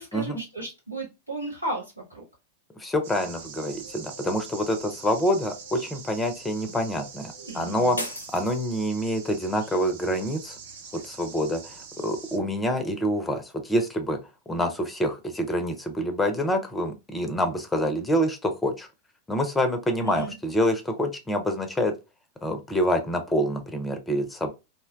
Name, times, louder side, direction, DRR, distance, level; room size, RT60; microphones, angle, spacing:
voice 1, 0.0-2.2 7.4-8.0 20.0-20.3, right 2 dB, 85° right, -3 dB, 1.5 m, -34 dB
voice 2, 2.8-8.0 8.3-10.6 11.0-14.2 14.5-18.9 19.3-21.9 22.4-24.5, equal, 10° left, 7 dB, 0.5 m, -26 dB
sound 1, 3.0-12.4, right 5 dB, 60° right, 0.5 m, -44 dB
sound 2, 8.0-9.2, left 1 dB, 80° left, 0.5 m, -36 dB
2.7 x 2.1 x 2.4 m, 0.25 s
figure-of-eight pair, 90°, 0 cm